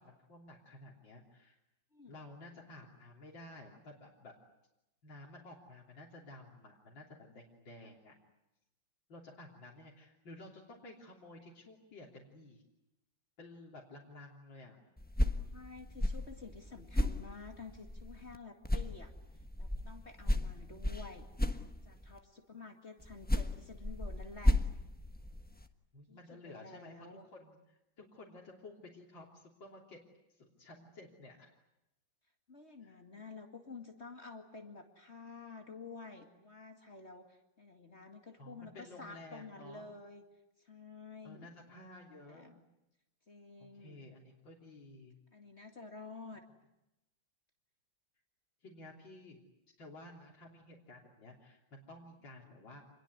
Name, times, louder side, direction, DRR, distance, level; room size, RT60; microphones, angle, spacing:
voice 1, 0.0-1.6 2.1-4.3 5.0-8.1 9.1-12.6 13.4-14.8 25.9-30.0 30.3-31.5 32.8-33.0 38.4-39.9 41.2-42.4 43.6-45.2 48.6-49.4 49.8-52.8, left 1 dB, 75° left, -2 dB, 4.1 m, -53 dB
voice 2, 1.9-2.2 15.5-19.1 19.6-21.2 21.9-24.6 26.1-27.3 32.5-40.2 40.6-41.9 42.3-42.6 43.3-44.0 45.3-46.4, left 4 dB, 35° left, 4 dB, 2.4 m, -50 dB
sound 1, 15.0-18.4 18.6-22.2 23.0-25.7, left 1 dB, 5° left, 1.1 m, -34 dB
27.5 x 21.5 x 9.5 m, 0.91 s
omnidirectional pair, 2.0 m